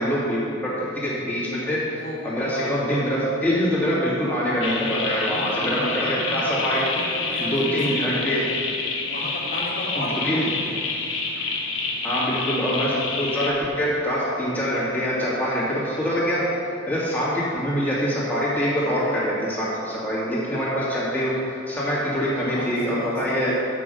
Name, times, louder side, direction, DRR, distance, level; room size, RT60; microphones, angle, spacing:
voice 1, 0.0-6.8 7.4-8.4 10.0-10.4 12.0-16.4 16.9-23.5, equal, 10° left, -8 dB, 2.6 m, -24 dB
voice 2, 1.6-2.8 4.6-7.5 7.9-8.1 9.0-10.8 22.5-23.6, left 1 dB, 50° left, -3 dB, 1.9 m, -35 dB
sound 1, 4.6-13.5, left 4 dB, 80° left, 1.2 m, -28 dB
7.5 x 6.1 x 7.9 m, 2.6 s
head